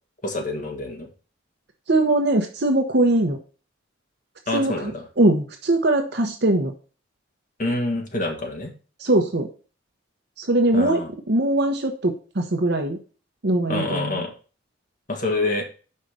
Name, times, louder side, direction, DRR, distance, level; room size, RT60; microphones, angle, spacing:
voice 1, 0.2-1.1 4.5-5.1 7.6-8.7 10.7-11.1 13.7-14.3 15.1-15.7, left 2 dB, 40° left, 3 dB, 1.6 m, -26 dB
voice 2, 1.9-3.4 4.5-4.9 5.2-6.7 9.0-9.5 10.4-11.0 11.3-13.0 13.4-14.2, right 1 dB, 55° right, 5 dB, 0.9 m, -21 dB
5.5 x 4.9 x 6.5 m, 0.37 s
head